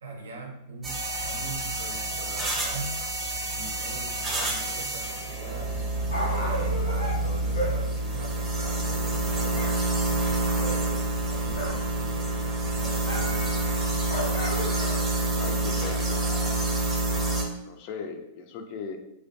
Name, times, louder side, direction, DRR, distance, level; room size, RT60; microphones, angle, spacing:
voice 1, 0.0-3.0 3.5-5.8 6.3-10.0 10.3-13.8, right 3 dB, 80° right, 2 dB, 0.5 m, -41 dB
sound 1, 0.8-17.4, right 2 dB, 20° right, 0.6 m, -28 dB
Dog, 5.8-9.8 10.0-11.9 12.2-15.2 15.8-15.9, equal, 80° left, 1.0 m, -35 dB
voice 2, 15.2-16.6 17.6-19.0, left 5 dB, 50° left, 5 dB, 0.4 m, -38 dB
2.4 x 2.1 x 2.6 m, 0.87 s
hypercardioid pair, 100°, 0 cm